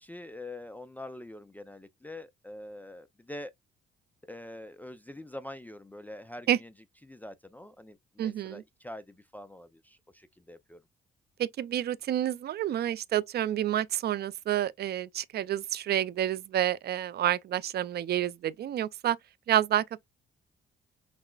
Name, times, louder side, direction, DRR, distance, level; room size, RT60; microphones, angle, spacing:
voice 1, 0.0-3.5 4.2-6.7 7.0-10.8, left 1 dB, 10° left, 0.4 m, -45 dB
voice 2, 8.2-8.6 11.4-19.2 19.5-20.1, right 11 dB, 55° right, 0.4 m, -29 dB
5.9 x 2.0 x 2.3 m
cardioid pair, 90°, 20 cm